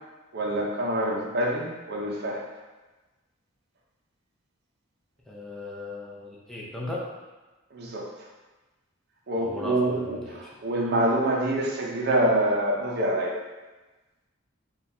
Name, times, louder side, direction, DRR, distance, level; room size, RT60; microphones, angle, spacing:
voice 1, 0.3-2.4 7.7-8.1 9.3-13.4, right 1 dB, 50° right, -2 dB, 0.5 m, -26 dB
voice 2, 5.3-7.1 9.4-10.5, left 2 dB, ahead, -5 dB, 0.5 m, -37 dB
4.3 x 2.3 x 2.6 m, 1.2 s
head